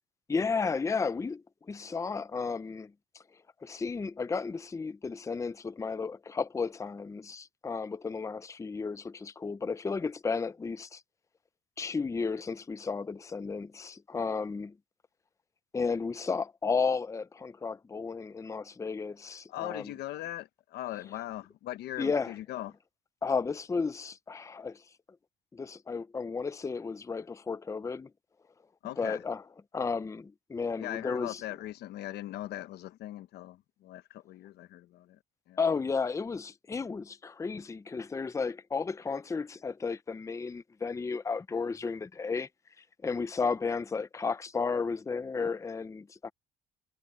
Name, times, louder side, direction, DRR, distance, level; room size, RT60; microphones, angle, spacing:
voice 1, 0.3-3.2 3.6-11.0 11.8-14.7 15.7-19.9 22.0-22.3 23.2-24.8 25.5-28.1 29.0-29.4 29.7-31.4 35.6-42.5 43.0-46.3, left 4 dB, 20° left, 0.7 m, -33 dB
voice 2, 19.5-22.7 28.8-29.2 30.8-35.2 35.5-35.6, left 14 dB, 75° left, 1.1 m, -40 dB
cardioid pair, 110°, 17 cm